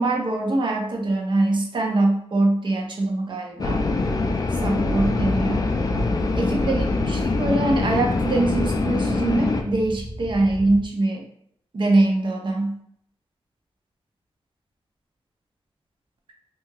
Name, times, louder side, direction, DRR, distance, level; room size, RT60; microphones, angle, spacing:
voice 1, 0.0-3.8 4.5-5.7 6.4-11.2 11.7-12.8, right 2 dB, 50° right, 1 dB, 0.6 m, -23 dB
sound 1, 3.6-9.6, left 3 dB, 40° left, 0.3 m, -23 dB
sound 2, 4.9-10.9, equal, 5° right, 0.8 m, -36 dB
2.7 x 2.4 x 2.9 m, 0.70 s
wide cardioid pair, 110°, 10 cm